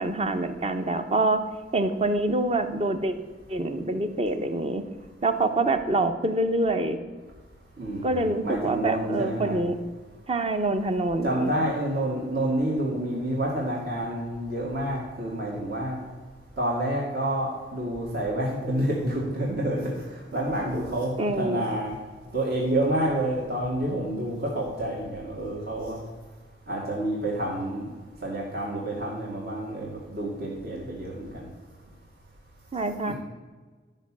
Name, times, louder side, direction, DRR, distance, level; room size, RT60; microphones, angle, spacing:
voice 1, 0.0-3.1 3.5-4.9 5.2-7.0 8.0-9.8 10.3-11.5 21.2-21.6 32.7-33.1, right 2 dB, 30° right, 8 dB, 0.8 m, -26 dB
voice 2, 7.8-9.6 11.2-16.0 16.6-21.9 22.3-26.0 26.7-27.9 28.2-31.5 33.1-33.2, right 1 dB, 55° right, -3 dB, 2.1 m, -28 dB
12.0 x 5.5 x 7.4 m, 1.4 s
head